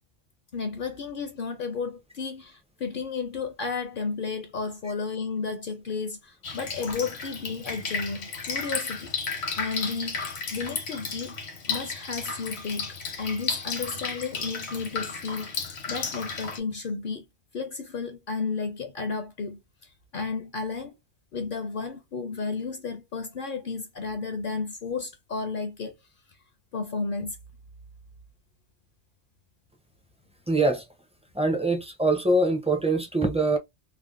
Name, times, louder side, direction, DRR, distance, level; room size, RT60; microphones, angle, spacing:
voice 1, 0.5-9.1 9.6-11.3 11.7-17.3 17.5-19.6 20.1-20.9 21.3-25.9 26.7-27.4, left 4 dB, 60° left, 0.7 m, -33 dB
Drip, 6.4-16.6, left 5 dB, 75° left, 1.1 m, -33 dB
voice 2, 30.5-30.8 31.3-33.6, right 2 dB, 10° right, 0.4 m, -23 dB
3.2 x 2.1 x 2.4 m
omnidirectional pair, 1.1 m